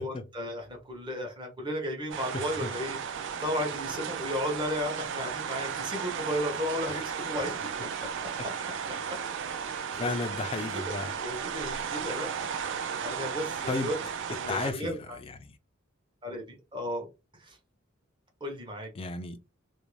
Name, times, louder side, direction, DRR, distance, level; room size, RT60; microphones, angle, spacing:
voice 1, 0.0-7.5 8.0-8.1 10.0-10.1 10.7-10.9 11.2-12.5 13.0-14.0 14.4-15.2 16.2-16.4 16.7-17.1 17.3-17.6 18.4-18.9, equal, 25° right, 0.8 m, -34 dB
sound 1, 2.1-14.7, right 7 dB, 60° right, 0.4 m, -35 dB
voice 2, 2.3-2.7 6.9-7.0 9.9-11.1 13.7-13.9 14.5-15.5 19.0-19.4, left 3 dB, 30° left, 0.3 m, -34 dB
2.6 x 2.0 x 3.0 m
head